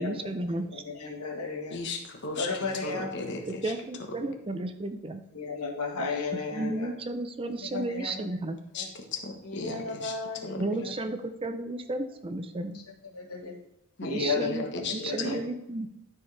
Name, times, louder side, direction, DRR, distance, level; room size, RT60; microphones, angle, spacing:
voice 1, 0.0-0.8 3.6-5.2 6.5-8.6 10.6-12.8 14.1-14.6 14.9-15.9, right 2 dB, 25° right, 8 dB, 0.4 m, -33 dB
voice 2, 0.5-1.8 2.4-3.6 5.3-6.9 7.5-8.2 8.7-8.9 9.4-10.9 12.7-12.8 13.1-13.5 14.0-14.7 15.0-15.5, left 4 dB, 80° left, 1 dB, 1.5 m, -34 dB
voice 3, 1.7-3.7 8.7-10.2 10.4-10.6 14.0-15.3, left 3 dB, 50° left, 3 dB, 1.1 m, -36 dB
12.5 x 4.5 x 3.3 m, 0.87 s
head